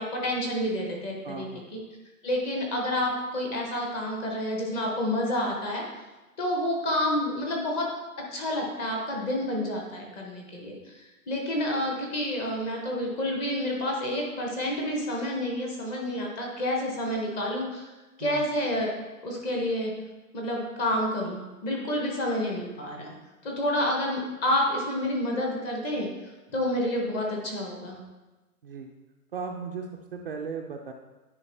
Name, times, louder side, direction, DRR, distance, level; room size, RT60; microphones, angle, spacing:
voice 1, 0.0-1.8 2.2-5.8 6.4-7.9 8.3-17.9 18.2-18.9 19.2-19.9 20.3-23.1 23.4-26.1 26.5-28.0, left 1 dB, 15° left, -1 dB, 0.7 m, -29 dB
voice 2, 1.2-1.7 18.2-18.5 28.6-28.9 29.3-30.9, right 5 dB, 40° right, 2 dB, 0.4 m, -36 dB
9.7 x 4.6 x 3.2 m, 1.1 s
hypercardioid pair, 150°, 45 cm